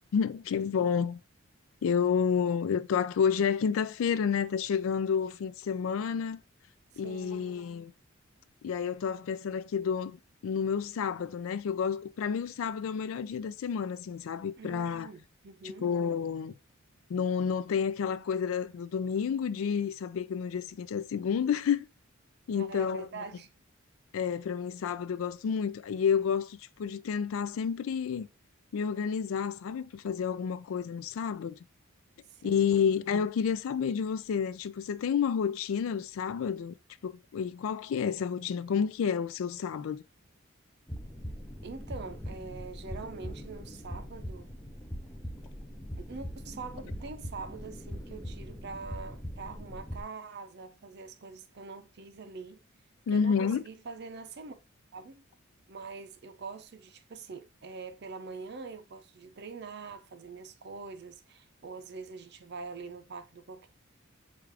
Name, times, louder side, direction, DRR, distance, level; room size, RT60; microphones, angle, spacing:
voice 1, 0.1-1.2 1.8-6.4 7.0-7.9 8.6-15.1 15.8-16.5 17.1-21.9 22.5-23.1 24.1-28.3 28.7-31.5 32.4-36.7 37.0-40.0 53.1-53.6, left 7 dB, 70° left, 0.3 m, -30 dB
voice 2, 7.0-7.5 14.6-15.9 22.5-23.5 32.3-32.9 41.6-44.5 46.0-52.6 53.1-54.6 54.9-55.2 55.7-63.7, right 4 dB, 50° right, 0.5 m, -44 dB
sound 1, 40.9-50.0, equal, 5° left, 0.4 m, -41 dB
4.8 x 2.4 x 3.3 m
head